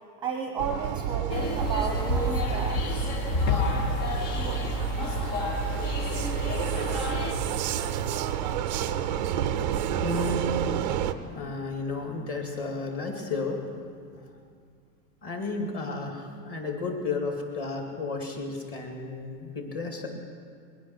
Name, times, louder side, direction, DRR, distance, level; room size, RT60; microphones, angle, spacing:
voice 1, 0.2-3.2, right 6 dB, 10° right, 3 dB, 0.7 m, -33 dB
Vehicle, 0.6-11.1, right 10 dB, 30° right, 0.3 m, -30 dB
sound 1, 1.3-7.3, left 2 dB, 65° left, 2.0 m, -29 dB
voice 2, 9.6-10.6 10.9-11.0 11.3-13.6 15.2-20.1, left 3 dB, 30° left, 2 dB, 2.3 m, -33 dB
21.5 x 9.5 x 5.9 m, 2.2 s
supercardioid pair, 145°, 49 cm